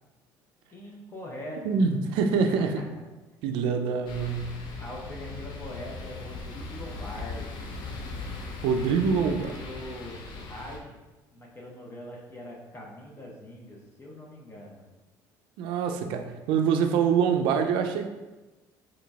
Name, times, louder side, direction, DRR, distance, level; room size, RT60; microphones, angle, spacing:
voice 1, 0.7-1.9 4.8-7.7 8.8-11.0 11.3-14.9, left 1 dB, 30° left, -3 dB, 0.8 m, -42 dB
voice 2, 1.6-2.8 3.4-4.6 8.6-9.5 15.6-18.1, right 6 dB, 75° right, 6 dB, 0.4 m, -25 dB
sound 1, 4.1-10.8, left 3 dB, 65° left, 0.5 m, -39 dB
3.9 x 3.2 x 2.3 m, 1.1 s
supercardioid pair, 90°, 9 cm